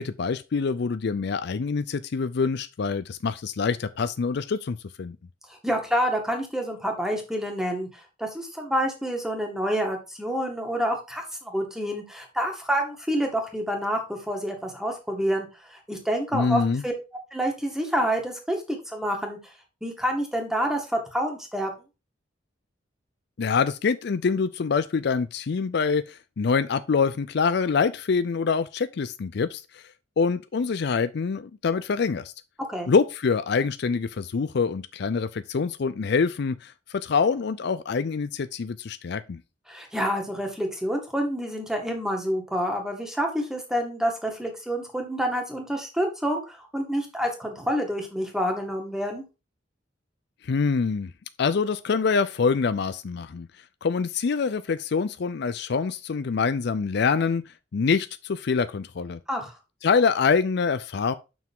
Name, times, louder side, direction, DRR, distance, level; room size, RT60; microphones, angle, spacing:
voice 1, 0.0-5.2 16.3-16.8 23.4-29.8 30.2-32.3 32.9-39.4 50.4-51.1 51.4-53.5 53.8-59.2 59.8-61.1, left 5 dB, 60° left, 0.4 m, -25 dB
voice 2, 5.5-7.9 8.2-16.9 17.3-19.4 19.8-21.7 32.7-32.9 39.7-49.2 59.3-59.5, equal, 5° right, 1.9 m, -28 dB
7.0 x 6.0 x 3.6 m
head